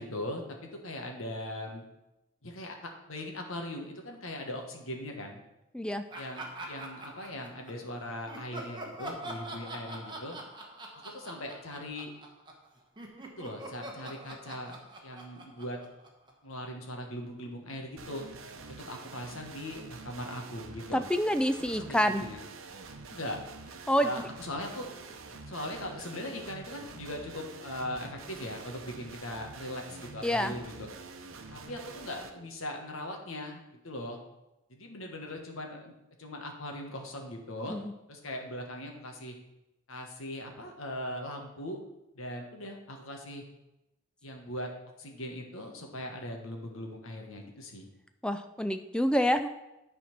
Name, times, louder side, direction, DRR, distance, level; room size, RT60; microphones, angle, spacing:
voice 1, 0.0-1.8 2.4-5.4 6.2-10.4 11.0-12.1 13.4-14.8 15.0-15.8 16.4-18.3 18.7-21.0 21.7-22.4 23.1-23.4 24.0-24.9 25.5-30.9 31.5-34.2 34.7-35.9 36.2-37.8 38.1-39.3 39.9-41.8 42.1-43.4 44.2-44.7 45.0-47.9, left 1 dB, 80° left, 2 dB, 1.5 m, -40 dB
Laughter, 6.1-7.9 8.3-12.7 13.0-16.5, right 1 dB, 20° right, 1.1 m, -44 dB
sound 1, 18.0-32.3, right 4 dB, 75° right, 0.8 m, -47 dB
voice 2, 20.9-22.2 23.9-24.1 30.2-30.5 37.7-37.9 48.2-49.5, equal, 5° left, 9 dB, 0.4 m, -27 dB
10.0 x 4.3 x 6.0 m, 0.93 s
head